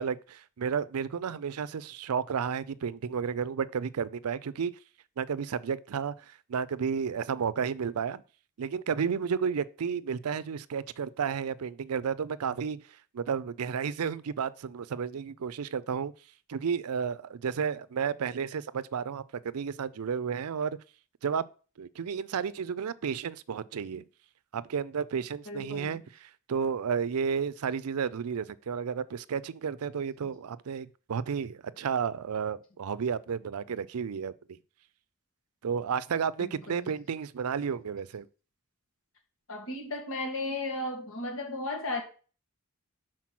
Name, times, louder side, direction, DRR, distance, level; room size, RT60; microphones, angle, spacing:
voice 1, 0.0-4.7 5.2-8.2 8.6-12.8 13.1-16.1 16.5-20.8 21.2-21.4 21.8-24.1 24.5-34.3 35.6-38.3, right 6 dB, 90° right, 0.5 m, -32 dB
voice 2, 25.5-26.0 36.4-36.9 39.5-42.0, left 2 dB, 65° left, 2.0 m, -35 dB
5.9 x 4.5 x 6.0 m
head